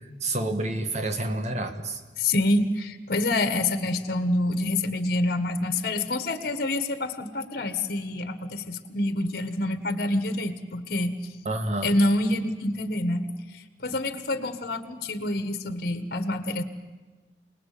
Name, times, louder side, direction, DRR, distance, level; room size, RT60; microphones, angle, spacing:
voice 1, 0.2-2.0 11.5-11.9, right 2 dB, 40° right, 7 dB, 1.7 m, -28 dB
voice 2, 2.2-11.2 11.8-16.6, left 1 dB, 60° left, 10 dB, 1.6 m, -27 dB
28.0 x 19.5 x 8.7 m, 1.3 s
head